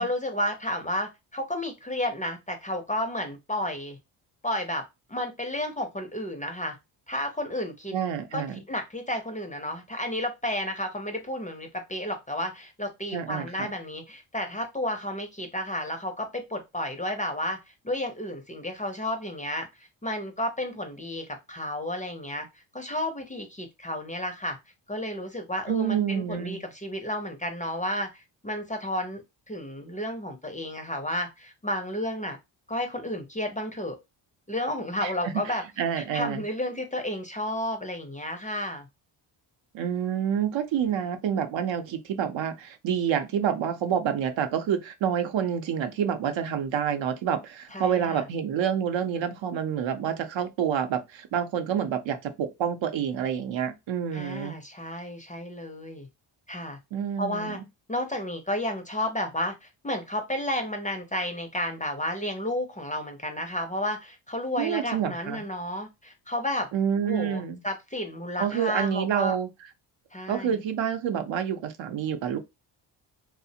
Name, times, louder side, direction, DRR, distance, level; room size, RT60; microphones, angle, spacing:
voice 1, 0.0-4.0 4.4-4.8 5.1-6.8 7.1-7.9 8.3-17.6 17.8-22.5 22.7-24.6 24.9-29.2 29.5-32.4 32.7-34.0 34.5-35.6 35.9-38.9 47.7-48.2 54.1-56.1 56.5-56.8 57.2-57.6 57.9-66.7 67.0-69.4 70.1-70.6, left 1 dB, 15° left, 0.5 m, -32 dB
voice 2, 7.9-8.6 13.1-13.7 25.7-26.6 35.0-36.4 39.7-54.6 56.9-57.6 64.6-65.4 66.7-67.6 68.4-69.5 70.3-72.4, right 8 dB, 65° right, 0.6 m, -28 dB
2.4 x 2.1 x 2.7 m
cardioid pair, 70°, 50 cm